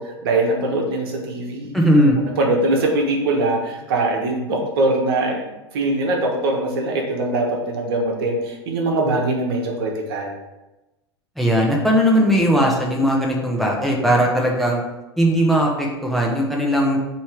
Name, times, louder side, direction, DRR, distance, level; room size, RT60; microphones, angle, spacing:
voice 1, 0.0-1.7 2.2-10.4, right 2 dB, 60° right, 1 dB, 1.3 m, -22 dB
voice 2, 1.7-2.2 11.4-14.8 15.2-17.0, equal, ahead, -2 dB, 1.0 m, -18 dB
8.5 x 3.2 x 3.5 m, 1.0 s
figure-of-eight pair, 90°, 14 cm